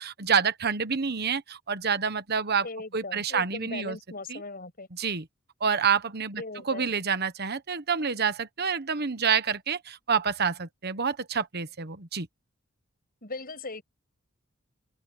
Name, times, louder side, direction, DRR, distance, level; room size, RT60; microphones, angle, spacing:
voice 1, 0.0-2.7 2.9-4.0 4.3-4.4 4.9-5.3 5.6-12.3, right 6 dB, 50° right, 1.2 m, -28 dB
voice 2, 2.6-4.9 6.4-6.9 13.2-13.8, left 3 dB, 45° left, 7.7 m, -39 dB
open air
head